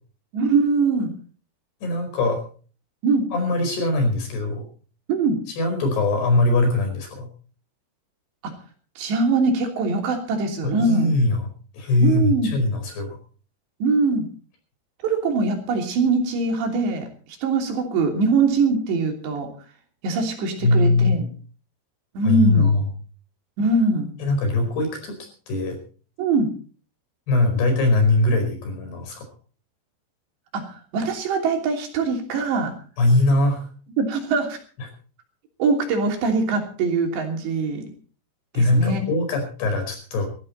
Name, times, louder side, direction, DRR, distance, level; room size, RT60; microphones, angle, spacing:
voice 1, 0.3-1.1 3.0-3.3 5.1-5.4 8.4-8.5 9.0-11.1 12.0-12.6 13.8-14.3 15.0-19.5 20.0-21.3 22.2-22.7 23.6-24.1 26.2-26.5 30.5-32.7 34.0-34.6 35.6-37.9 38.5-39.1, right 3 dB, 80° right, 3 dB, 5.3 m, -22 dB
voice 2, 1.8-2.4 3.3-4.6 5.6-7.3 10.6-11.5 11.7-13.2 20.6-21.2 22.2-22.8 24.2-25.1 25.5-25.8 27.3-29.3 33.0-33.7 38.5-40.3, left 2 dB, 65° left, 4 dB, 6.8 m, -21 dB
18.5 x 14.0 x 4.3 m, 0.41 s
omnidirectional pair, 5.0 m